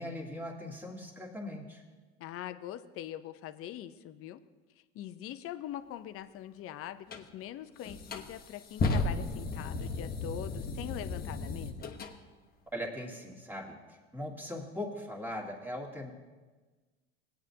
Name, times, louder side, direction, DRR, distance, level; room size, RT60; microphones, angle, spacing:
voice 1, 0.0-1.8 12.7-16.1, left 1 dB, 5° right, 0 dB, 1.7 m, -40 dB
voice 2, 2.2-4.4 4.9-11.9, left 11 dB, 45° left, 12 dB, 0.6 m, -43 dB
sound 1, 7.1-7.2 7.8-12.1, left 3 dB, 30° left, 1.0 m, -34 dB
17.0 x 9.0 x 2.8 m, 1.3 s
supercardioid pair, 95°, 32 cm